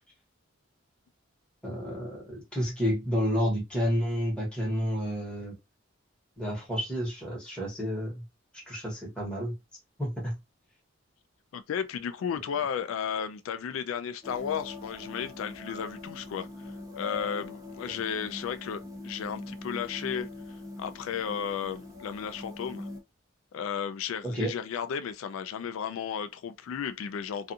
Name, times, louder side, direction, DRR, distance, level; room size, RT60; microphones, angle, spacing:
voice 1, 1.6-5.5 6.4-8.2 8.5-9.5 10.0-10.3 24.2-24.5, equal, 5° left, 1.2 m, -30 dB
voice 2, 11.5-22.9 23.5-27.5, left 7 dB, 85° left, 0.3 m, -34 dB
sound 1, 14.2-23.0, left 3 dB, 15° right, 0.6 m, -42 dB
2.5 x 2.4 x 2.6 m
head